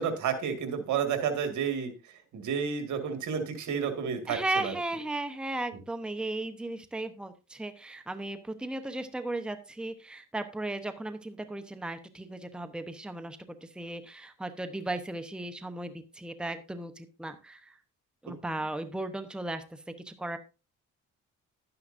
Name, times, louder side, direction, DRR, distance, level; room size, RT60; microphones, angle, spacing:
voice 1, 0.0-1.9 2.3-4.7, right 7 dB, 75° right, 7 dB, 2.0 m, -31 dB
voice 2, 4.3-17.7 18.2-19.8 20.0-20.4, right 2 dB, 5° right, 9 dB, 0.9 m, -36 dB
11.5 x 9.7 x 2.6 m, 0.29 s
cardioid pair, 90°, 30 cm